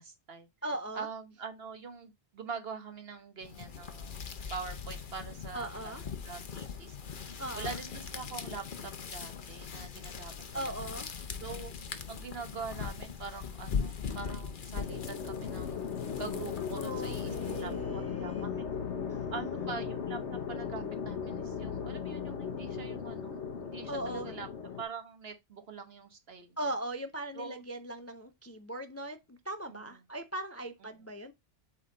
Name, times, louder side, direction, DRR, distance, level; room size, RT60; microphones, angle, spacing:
voice 1, 0.0-0.5 0.9-4.1 4.5-7.0 7.5-10.9 11.4-11.7 12.1-15.8 16.2-18.6 19.3-24.5 24.8-26.6 27.3-27.6 29.7-29.8 31.0-31.1, right 5 dB, 60° right, 1.3 m, -44 dB
voice 2, 0.6-1.1 5.5-6.0 7.4-7.8 10.5-11.2 16.8-18.6 19.1-19.6 23.9-24.3 26.6-31.3, right 1 dB, 25° left, 0.3 m, -39 dB
sound 1, 3.4-17.9, left 6 dB, 50° left, 0.9 m, -40 dB
sound 2, 14.8-24.8, left 6 dB, 85° left, 1.3 m, -37 dB
8.2 x 3.7 x 3.8 m
omnidirectional pair, 1.1 m